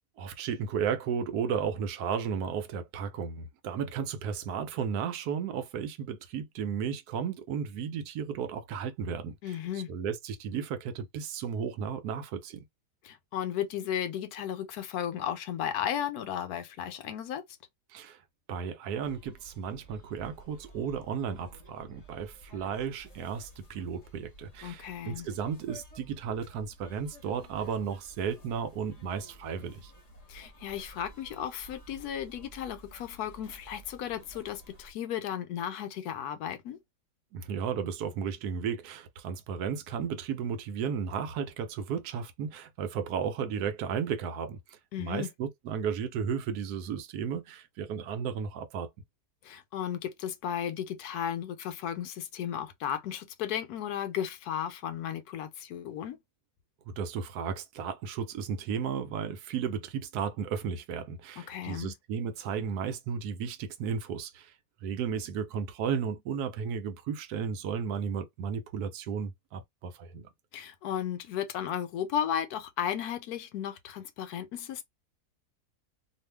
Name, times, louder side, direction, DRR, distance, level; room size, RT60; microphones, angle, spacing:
voice 1, 0.2-9.6 9.9-12.6 17.9-18.2 18.5-29.9 37.3-48.9 56.9-64.5 64.8-70.3, right 7 dB, 80° right, 1.1 m, -34 dB
voice 2, 9.4-9.9 13.0-17.4 24.6-25.3 30.3-36.8 44.9-45.3 49.4-56.2 61.4-61.9 70.5-74.8, left 9 dB, 80° left, 1.1 m, -34 dB
sound 1, 19.0-34.9, right 1 dB, 30° left, 1.0 m, -53 dB
2.6 x 2.4 x 3.2 m
omnidirectional pair, 1.7 m